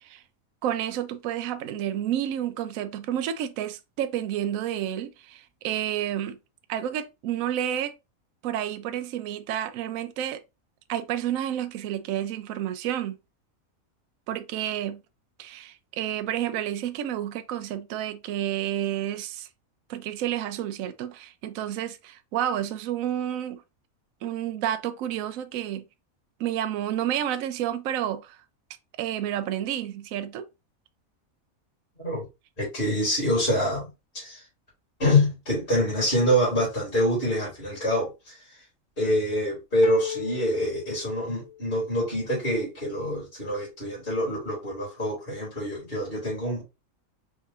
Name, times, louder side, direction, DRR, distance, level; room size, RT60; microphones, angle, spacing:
voice 1, 0.6-6.4 6.7-7.9 8.4-10.4 10.9-13.2 14.3-15.0 15.4-19.5 19.9-23.6 24.2-25.8 26.4-28.4 29.0-30.5, right 11 dB, 75° right, 1.0 m, -30 dB
voice 2, 32.6-33.9 34.1-34.4 35.0-38.4 39.0-46.6, equal, 35° left, 2.5 m, -26 dB
sound 1, 39.8-41.8, left 11 dB, 80° left, 1.1 m, -34 dB
4.7 x 3.3 x 2.7 m
omnidirectional pair, 1.5 m